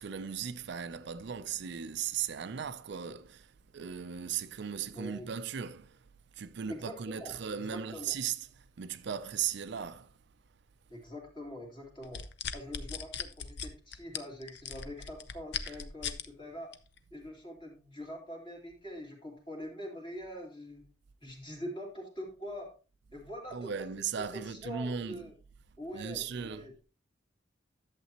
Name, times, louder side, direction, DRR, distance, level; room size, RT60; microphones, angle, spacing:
voice 1, 0.0-6.0 6.4-10.1 15.6-15.7 23.5-25.3 25.9-26.7, right 7 dB, 60° right, 0.4 m, -37 dB
voice 2, 4.9-5.3 6.7-7.3 7.6-8.1 10.9-12.2 12.5-16.7 17.1-20.8 21.2-22.7 23.1-23.7 24.2-25.3 25.8-26.7, equal, 25° left, 2.6 m, -44 dB
sound 1, 12.0-16.3 16.7-17.0, left 7 dB, 65° left, 0.7 m, -38 dB
11.0 x 7.5 x 2.9 m
head